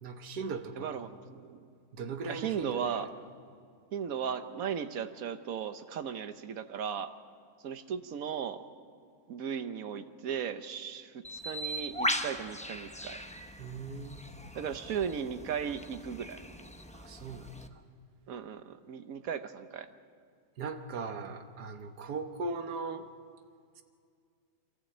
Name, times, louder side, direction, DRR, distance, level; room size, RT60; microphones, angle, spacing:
voice 1, 0.0-1.1 1.9-3.0 13.6-14.2 16.9-17.5 20.6-23.0, right 4 dB, 85° right, 7 dB, 1.7 m, -38 dB
voice 2, 0.8-1.7 2.3-3.1 3.9-7.1 7.6-8.6 9.3-13.2 14.5-16.4 18.3-19.9, right 7 dB, 65° right, 11 dB, 1.2 m, -36 dB
Bird, 11.2-17.7, equal, 10° left, 0.5 m, -39 dB
23.0 x 14.5 x 8.5 m, 2.3 s
omnidirectional pair, 1.7 m